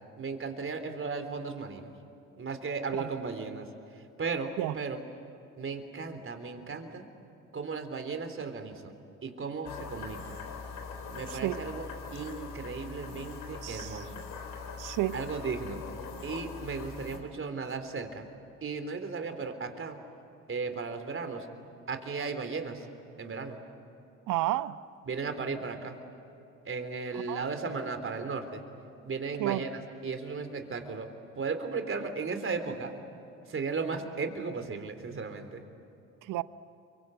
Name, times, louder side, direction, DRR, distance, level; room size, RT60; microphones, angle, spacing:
voice 1, 0.2-1.9 2.4-3.7 4.2-5.0 5.6-7.0 7.5-8.9 9.2-10.4 11.1-11.8 12.1-14.1 15.1-15.8 16.2-18.2 18.6-20.0 20.5-21.5 21.9-22.9 23.2-23.6 25.1-25.9 26.7-28.6 29.0-29.7 30.0-31.1 31.4-32.9 33.5-35.6, right 4 dB, 35° right, 3.7 m, -35 dB
sound 1, 9.7-17.2, left 5 dB, 60° left, 3.8 m, -42 dB
voice 2, 11.3-11.6 13.6-14.1 14.8-15.2 24.3-24.8 27.3-27.4 29.4-29.6 36.2-36.4, right 15 dB, 60° right, 0.9 m, -31 dB
30.0 x 24.0 x 8.0 m
hypercardioid pair, 60°, 36 cm